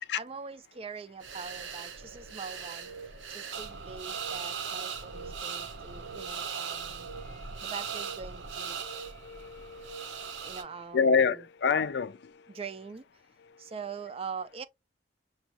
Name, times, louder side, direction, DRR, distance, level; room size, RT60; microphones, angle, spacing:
voice 1, 0.1-2.9 3.3-7.1 7.6-8.8 10.4-11.4 12.5-13.1 13.6-14.6, right 5 dB, 30° right, 0.4 m, -43 dB
sound 1, 1.2-10.6, right 6 dB, 75° right, 0.7 m, -39 dB
voice 2, 8.8-10.2 10.9-12.2, left 5 dB, 60° left, 0.4 m, -28 dB
6.1 x 2.3 x 2.8 m
head